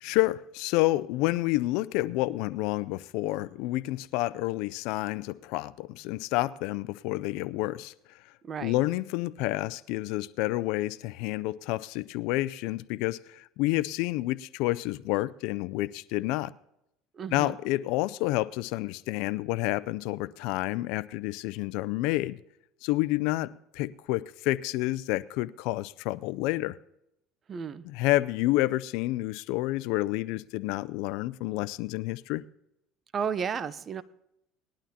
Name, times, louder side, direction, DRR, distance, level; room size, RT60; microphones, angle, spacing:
voice 1, 0.0-7.9 8.6-16.5 17.3-22.4 22.8-26.8 27.8-32.4, left 18 dB, 75° left, 0.4 m, -29 dB
voice 2, 8.4-8.7 17.1-17.6 27.5-27.8 33.1-34.0, right 6 dB, 35° right, 0.7 m, -33 dB
19.5 x 11.5 x 2.9 m
supercardioid pair, 100°, 0 cm